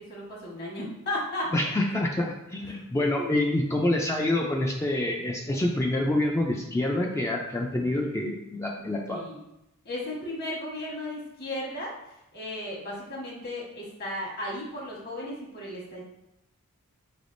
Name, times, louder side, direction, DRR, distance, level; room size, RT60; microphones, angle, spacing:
voice 1, 0.1-1.5 3.1-3.5 9.1-9.4 9.8-12.0 12.3-16.0, left 1 dB, 45° left, -4 dB, 1.3 m, -35 dB
voice 2, 1.5-9.2, left 1 dB, 10° left, 0 dB, 0.3 m, -27 dB
4.9 x 3.4 x 2.5 m, 0.86 s
head